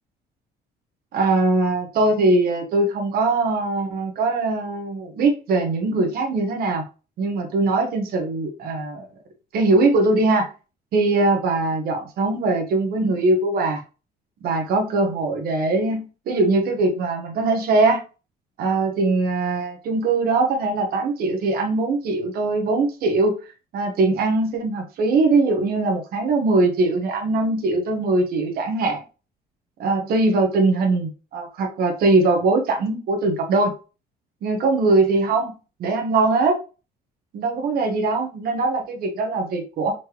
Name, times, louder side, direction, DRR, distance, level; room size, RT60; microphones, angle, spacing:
voice 1, 1.1-6.8 7.2-9.1 9.5-10.5 10.9-13.8 14.4-18.0 18.6-23.3 23.7-29.0 29.8-33.7 34.4-35.5 35.8-36.6 37.3-39.9, right 3 dB, 65° right, 3 dB, 1.2 m, -21 dB
4.4 x 3.2 x 3.0 m, 0.33 s
cardioid pair, 110°, 17 cm